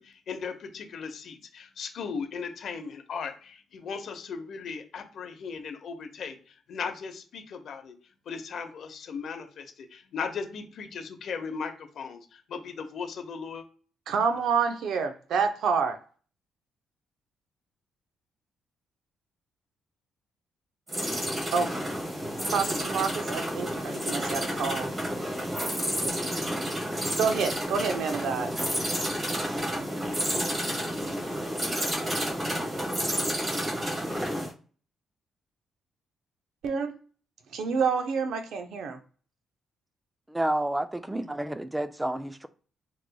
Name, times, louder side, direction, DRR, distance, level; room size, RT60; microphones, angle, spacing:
voice 1, 0.0-6.4 6.7-7.9 8.3-13.6, left 5 dB, 60° left, 0.8 m, -37 dB
voice 2, 14.1-16.0 21.5-21.7 22.5-24.9 27.2-28.5 36.6-36.9 37.5-39.0, right 5 dB, 75° right, 0.6 m, -28 dB
sound 1, 20.9-34.5, equal, 30° right, 1.4 m, -30 dB
voice 3, 40.3-42.5, right 1 dB, 10° right, 0.3 m, -30 dB
4.0 x 3.0 x 2.2 m
cardioid pair, 90°, 0 cm